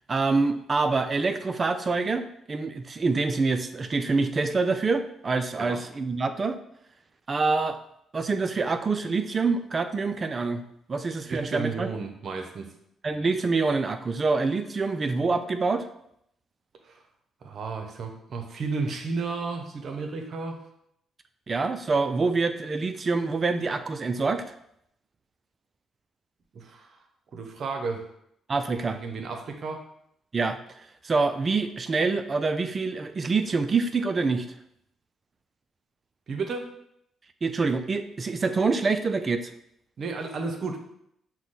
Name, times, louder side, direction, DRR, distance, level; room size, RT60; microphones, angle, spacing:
voice 1, 0.1-6.6 7.3-7.8 8.1-10.6 10.9-11.9 13.0-15.9 21.5-24.5 28.5-29.0 30.3-30.6 31.0-34.5 37.4-39.5, right 4 dB, 40° right, 9 dB, 0.4 m, -26 dB
voice 2, 11.2-12.7 16.8-17.0 17.4-20.6 26.5-27.0 27.3-28.1 28.7-29.8 36.3-36.7 40.0-40.8, right 4 dB, 55° right, 4 dB, 0.8 m, -33 dB
5.9 x 2.2 x 4.0 m, 0.74 s
hypercardioid pair, 45°, 0 cm